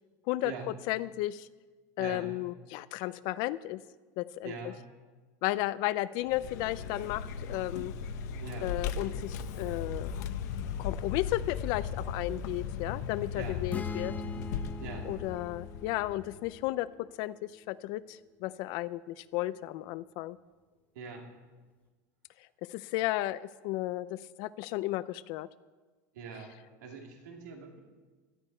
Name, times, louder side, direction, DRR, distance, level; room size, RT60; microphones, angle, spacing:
voice 1, 0.3-1.5 2.0-3.8 4.2-4.7 5.4-7.9 8.6-10.3 10.8-14.1 15.0-20.4 22.6-25.5, left 16 dB, 55° left, 15 dB, 0.4 m, -34 dB
voice 2, 4.4-4.8 8.4-8.7 13.3-13.6 14.8-15.1 20.9-21.3 26.1-26.5 26.8-27.8, right 5 dB, 85° right, 1 dB, 2.5 m, -42 dB
Vehicle, 6.2-16.6, left 7 dB, 80° left, 1.0 m, -37 dB
sound 1, 13.7-17.4, left 2 dB, 15° left, 0.8 m, -43 dB
17.0 x 12.0 x 4.4 m, 1.3 s
supercardioid pair, 140°, 9 cm